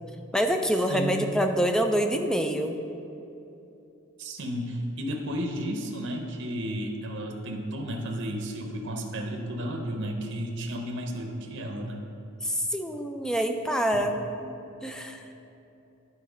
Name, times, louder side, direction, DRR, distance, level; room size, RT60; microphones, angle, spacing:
voice 1, 0.3-2.8 12.4-14.2 14.4-14.6 14.8-15.2, equal, 5° left, 5 dB, 0.3 m, -26 dB
voice 2, 0.9-1.3 4.2-12.0 13.9-14.1, equal, 55° right, 3 dB, 0.7 m, -33 dB
9.4 x 4.2 x 5.0 m, 2.8 s
head